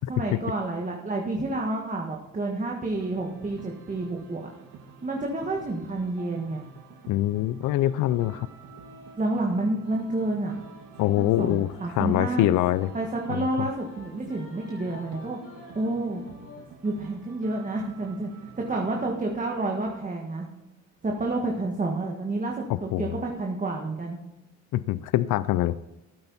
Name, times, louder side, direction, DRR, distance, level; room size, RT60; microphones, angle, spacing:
voice 1, 0.1-4.5 5.0-6.6 9.2-10.6 11.1-12.5 12.9-15.4 15.7-16.2 16.8-18.3 18.5-20.5 21.0-24.2, right 2 dB, 25° right, 0 dB, 1.6 m, -29 dB
sound 1, 2.9-19.4, right 5 dB, 85° right, 1.7 m, -49 dB
voice 2, 7.1-8.5 11.0-11.7 12.0-12.9 13.3-13.5 22.9-23.2 24.7-25.8, left 14 dB, 80° left, 16 dB, 0.5 m, -24 dB
sound 2, 7.6-9.2 9.8-13.0 13.7-16.7, left 3 dB, 45° left, 3.4 m, -49 dB
13.5 x 8.8 x 4.1 m, 0.99 s
cardioid pair, 90°, 30 cm